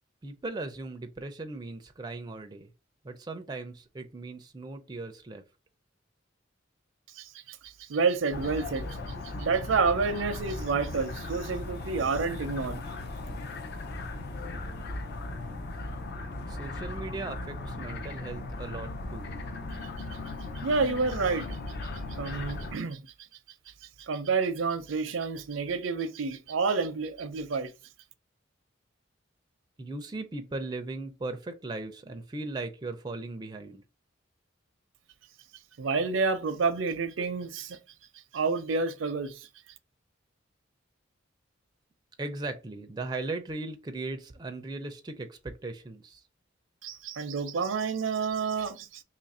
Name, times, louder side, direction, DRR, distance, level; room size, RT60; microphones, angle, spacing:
voice 1, 0.2-2.7 3.0-5.4 16.5-19.4 29.8-33.8 42.2-46.2, right 2 dB, 20° right, 0.4 m, -38 dB
voice 2, 7.2-8.9 9.4-12.8 20.6-21.6 22.1-23.0 24.0-27.7 35.8-37.8 38.3-39.5 46.8-49.0, right 4 dB, 80° right, 0.5 m, -29 dB
sound 1, 8.3-22.8, left 2 dB, 55° left, 0.5 m, -37 dB
2.9 x 2.5 x 4.1 m
head